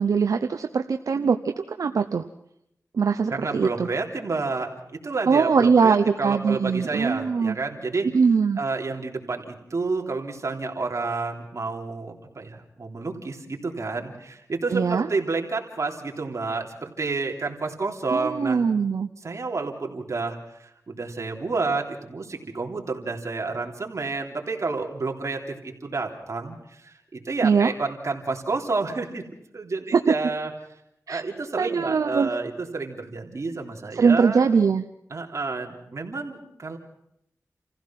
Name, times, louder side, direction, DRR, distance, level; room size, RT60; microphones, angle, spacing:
voice 1, 0.0-2.2 2.9-3.9 5.3-7.5 8.1-8.6 14.7-15.1 18.1-19.1 27.4-27.7 29.9-30.1 31.1-31.2 31.6-32.3 34.0-34.8, right 5 dB, 80° right, 7 dB, 0.8 m, -21 dB
voice 2, 3.3-8.1 8.6-18.7 19.2-29.2 29.5-30.5 31.1-34.5 35.1-36.8, right 3 dB, 60° right, 1 dB, 3.2 m, -30 dB
28.0 x 15.5 x 5.9 m, 0.77 s
cardioid pair, 55°, 6 cm